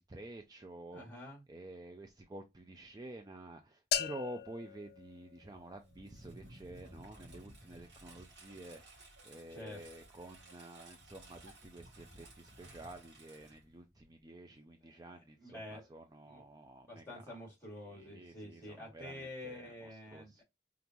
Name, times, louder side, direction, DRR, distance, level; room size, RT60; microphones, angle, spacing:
voice 1, 0.0-1.1 1.5-8.8 9.2-17.4 17.9-20.4, right 1 dB, 20° right, 0.4 m, -50 dB
voice 2, 0.9-1.4 9.5-9.8 14.8-15.9 16.2-16.4 16.9-20.4, left 1 dB, 15° left, 2.5 m, -48 dB
sound 1, 3.9-5.9, left 9 dB, 60° left, 0.4 m, -38 dB
Engine, 5.5-14.2, right 1 dB, 85° right, 1.1 m, -56 dB
5.3 x 2.5 x 2.9 m
head